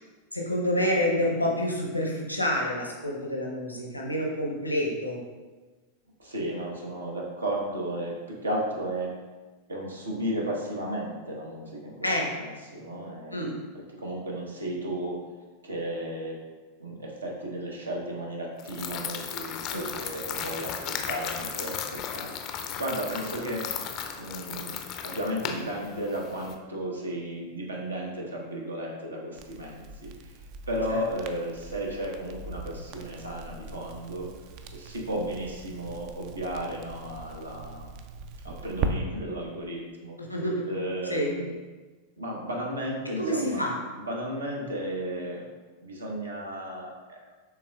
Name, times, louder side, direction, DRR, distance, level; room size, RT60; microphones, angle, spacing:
voice 1, 0.3-5.2 12.0-12.3 13.3-13.5 19.7-19.8 30.9-31.0 35.1-35.2 40.2-40.7 41.1-41.3 43.2-43.8, equal, 85° left, -1 dB, 0.8 m, -28 dB
voice 2, 6.2-9.1 9.7-12.0 12.3-13.5 13.9-15.2 15.6-16.4 16.8-23.7 24.2-24.8 25.0-30.3 30.7-34.3 34.7-37.9 38.4-40.2 40.7-41.6 42.2-43.6 44.0-45.5 45.8-47.2, right 1 dB, 75° right, -1 dB, 0.9 m, -34 dB
sound 1, 18.6-26.5, left 8 dB, 35° left, 0.4 m, -36 dB
Crackle, 29.3-38.9, right 4 dB, 45° right, 0.3 m, -39 dB
5.8 x 3.5 x 2.2 m, 1.3 s
figure-of-eight pair, 90°, 0 cm